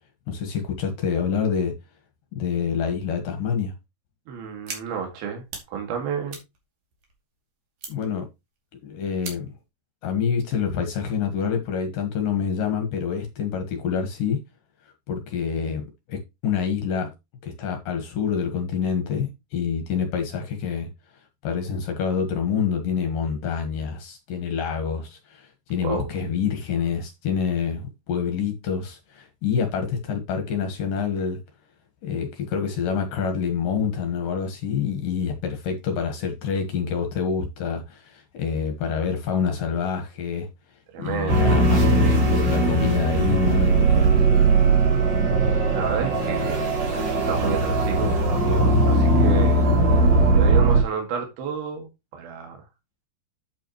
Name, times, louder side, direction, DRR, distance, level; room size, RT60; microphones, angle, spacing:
voice 1, 0.3-1.7 2.4-3.7 7.9-8.3 8.8-9.5 10.0-14.4 15.1-17.1 17.4-20.9 21.4-31.4 32.0-40.5 41.0-42.1 42.5-44.1, left 6 dB, 65° left, 2.8 m, -27 dB
voice 2, 4.3-5.4 5.7-6.4 25.8-26.1 40.9-41.6 45.7-49.6 49.9-52.6, right 7 dB, 70° right, 3.8 m, -31 dB
sound 1, 4.7-4.8 5.2-5.7 6.0-7.3 7.8-8.1 8.5-8.6 9.2-9.6, right 4 dB, 55° right, 3.9 m, -38 dB
sound 2, 41.3-50.8, right 2 dB, 35° right, 2.0 m, -19 dB
9.0 x 8.2 x 3.0 m
omnidirectional pair, 4.5 m